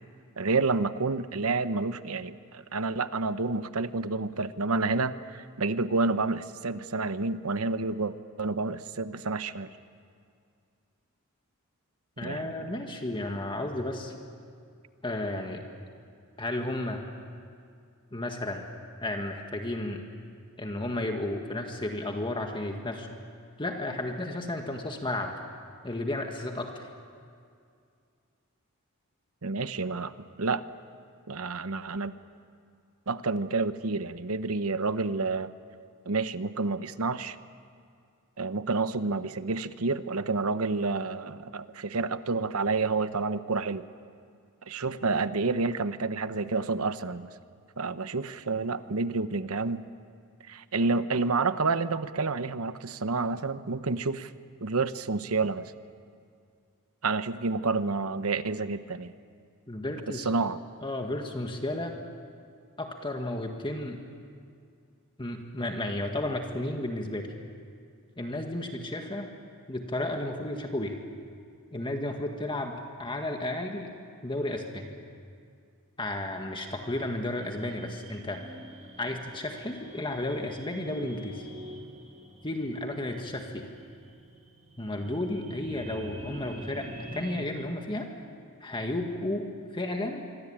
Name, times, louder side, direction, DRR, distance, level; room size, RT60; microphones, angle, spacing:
voice 1, 0.4-9.7 12.2-12.7 29.4-30.1 30.4-30.6 31.3-32.1 33.1-35.5 36.1-37.4 38.4-43.9 44.7-47.3 47.8-49.8 50.5-54.3 54.6-55.7 57.0-59.1 60.1-60.6, right 3 dB, 80° right, 12 dB, 1.0 m, -29 dB
voice 2, 12.2-14.1 15.0-15.6 16.4-17.0 18.1-18.7 19.0-20.0 20.6-23.1 23.6-25.4 25.8-26.8 59.7-60.3 60.8-61.9 62.8-64.0 65.2-67.3 68.2-69.3 69.7-71.0 71.7-73.9 74.2-74.9 76.0-78.4 79.0-81.5 82.4-83.7 84.8-88.1 88.6-89.5 89.7-90.2, left 1 dB, 25° left, 3 dB, 1.8 m, -33 dB
sound 1, 77.4-87.5, right 1 dB, 30° right, 2.0 m, -46 dB
26.0 x 24.0 x 8.9 m, 2.3 s
head